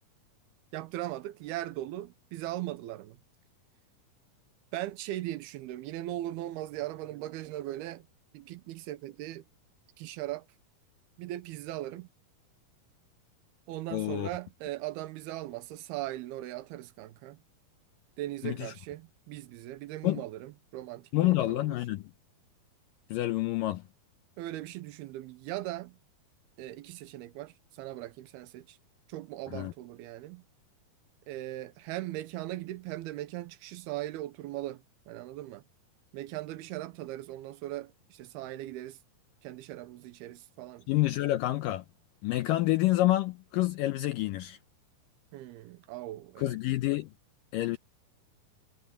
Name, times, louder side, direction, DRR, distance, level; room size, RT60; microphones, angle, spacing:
voice 1, 0.7-3.2 4.7-8.1 8.3-9.4 10.0-10.5 11.2-12.1 13.7-17.4 18.2-21.8 24.4-26.0 26.6-28.8 29.1-30.4 31.3-35.6 36.1-39.0 39.4-40.9 45.3-46.6, right 15 dB, 90° right, 2.9 m, -39 dB
voice 2, 13.9-14.3 18.4-18.7 20.0-20.2 21.1-22.0 23.1-23.8 29.5-29.7 40.9-41.9 42.2-44.6 46.4-47.1 47.5-47.8, left 16 dB, 80° left, 2.1 m, -28 dB
omnidirectional pair, 4.5 m